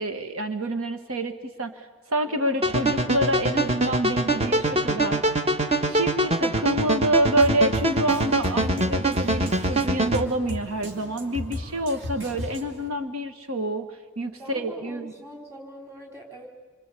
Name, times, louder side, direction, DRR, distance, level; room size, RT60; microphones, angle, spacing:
voice 1, 0.0-5.2 5.9-15.1, right 1 dB, 80° right, 7 dB, 1.5 m, -27 dB
sound 1, 2.6-10.2, right 2 dB, 30° right, 1.1 m, -24 dB
Drum kit, 7.4-12.9, left 1 dB, 65° right, 2.8 m, -36 dB
voice 2, 14.4-16.5, equal, 15° right, 0 dB, 4.5 m, -43 dB
27.5 x 24.5 x 8.4 m, 1.3 s
head